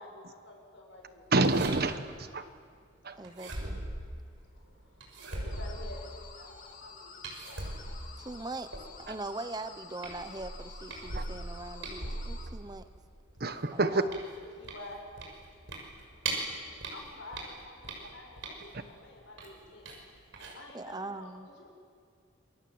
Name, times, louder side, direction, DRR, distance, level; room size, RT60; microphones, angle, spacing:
voice 1, 0.0-1.2 2.3-2.5 4.5-7.3 13.7-14.0 14.6-15.0 16.9-19.8 20.4-21.7, left 2 dB, 75° left, 0 dB, 7.3 m, -49 dB
voice 2, 1.3-2.4 3.0-3.2 9.1-9.2 11.1-11.2 13.4-14.0, right 3 dB, 50° right, 10 dB, 1.3 m, -27 dB
sound 1, 1.4-2.1 3.2-4.5 5.0-6.4 7.2-9.2 9.6-9.8 10.0-13.0 13.4-16.5 16.8-18.8 19.4-20.0 20.3-20.5, right 2 dB, 85° right, 6.2 m, -39 dB
voice 3, 3.2-3.8 8.2-8.7 9.0-12.9 13.7-14.2 20.7-21.5, right 2 dB, 20° right, 11 dB, 0.8 m, -41 dB
sound 2, 5.5-12.5, left 5 dB, 40° left, 2.8 m, -50 dB
28.0 x 23.5 x 7.8 m, 2.1 s
head